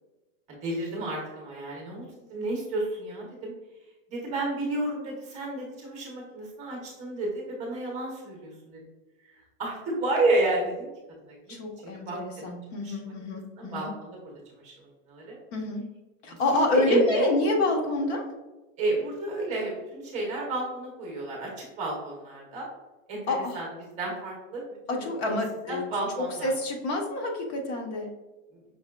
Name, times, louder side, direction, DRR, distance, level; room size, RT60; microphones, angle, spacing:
voice 1, 0.5-3.5 4.1-8.8 9.2-10.9 11.2-11.6 11.9-12.2 12.8-13.0 13.6-14.2 14.6-15.3 16.3-17.4 18.8-22.7 23.1-23.2 23.5-23.7 24.0-25.4 25.7-26.5 28.5-28.6, right 2 dB, 20° right, -2 dB, 0.7 m, -31 dB
voice 2, 11.5-13.9 15.5-15.8 16.2-18.2 23.3-23.6 24.9-25.9 26.2-28.1, left 2 dB, 50° left, 1 dB, 1.0 m, -28 dB
5.5 x 3.5 x 2.2 m, 1.1 s
supercardioid pair, 170°, 39 cm